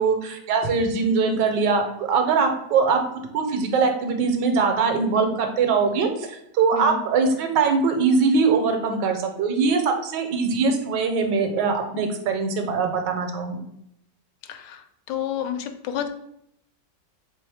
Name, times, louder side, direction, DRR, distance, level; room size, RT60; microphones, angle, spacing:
voice 1, 0.0-13.6, right 5 dB, 80° right, 5 dB, 1.4 m, -22 dB
voice 2, 14.5-14.8 15.1-16.1, left 9 dB, 80° left, 8 dB, 1.2 m, -29 dB
3.5 x 3.2 x 4.6 m, 0.74 s
omnidirectional pair, 1.9 m